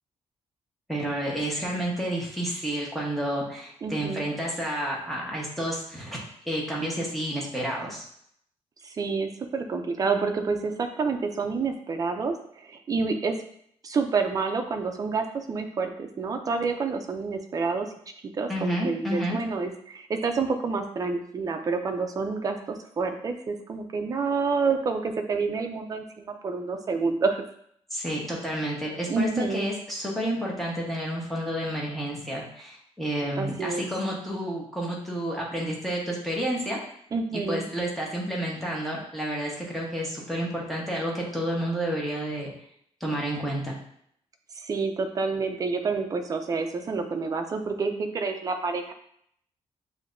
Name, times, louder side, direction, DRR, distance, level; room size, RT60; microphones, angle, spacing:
voice 1, 0.9-6.2 6.5-8.0 18.5-19.4 27.9-36.8 37.3-42.5 43.0-43.8, right 1 dB, ahead, -4 dB, 1.1 m, -30 dB
voice 2, 3.8-4.2 8.8-12.3 12.7-13.4 13.8-17.9 18.3-27.4 29.1-29.7 33.4-33.8 37.1-37.6 44.7-48.9, right 4 dB, 30° right, 5 dB, 0.5 m, -28 dB
7.0 x 2.8 x 2.6 m, 0.67 s
wide cardioid pair, 165°, 12 cm